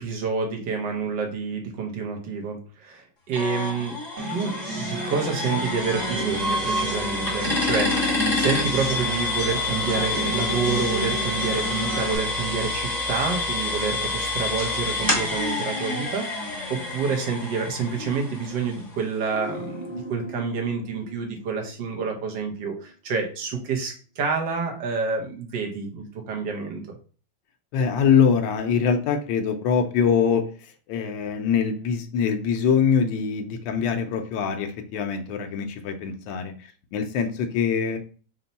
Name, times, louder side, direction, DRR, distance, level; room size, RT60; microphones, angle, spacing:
voice 1, 0.0-4.0 4.3-26.8, right 5 dB, 75° right, 1 dB, 1.6 m, -28 dB
sound 1, 3.3-19.0, left 2 dB, 15° left, 0.8 m, -28 dB
sound 2, 4.2-12.2, right 2 dB, 50° right, 1.3 m, -32 dB
sound 3, 19.3-22.6 22.8-22.9, right 1 dB, 45° left, 0.6 m, -39 dB
voice 2, 27.7-30.4 30.9-36.5 36.9-38.0, left 6 dB, 85° left, 5 dB, 1.3 m, -23 dB
4.1 x 2.2 x 4.0 m, 0.38 s
omnidirectional pair, 2.0 m